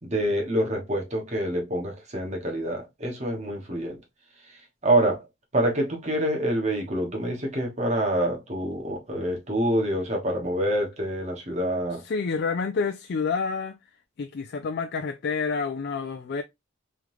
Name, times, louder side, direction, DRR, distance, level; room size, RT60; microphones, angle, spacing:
voice 1, 0.0-4.0 4.8-5.2 5.5-12.0, right 1 dB, 35° right, 1.3 m, -26 dB
voice 2, 12.0-13.8 14.2-16.4, left 5 dB, 50° left, 0.4 m, -28 dB
3.7 x 3.3 x 3.0 m
head